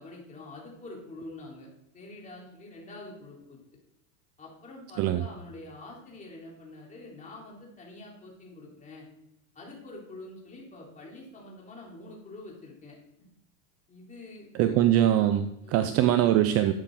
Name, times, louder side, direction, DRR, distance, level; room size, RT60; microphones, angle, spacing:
voice 1, 0.0-1.7 1.9-3.6 4.4-9.1 9.6-13.3 13.9-14.9 15.6-16.0, left 2 dB, 15° left, -3 dB, 3.6 m, -46 dB
voice 2, 14.6-16.7, right 12 dB, 35° right, 9 dB, 0.6 m, -22 dB
12.0 x 8.7 x 3.8 m, 0.87 s
supercardioid pair, 140°, 43 cm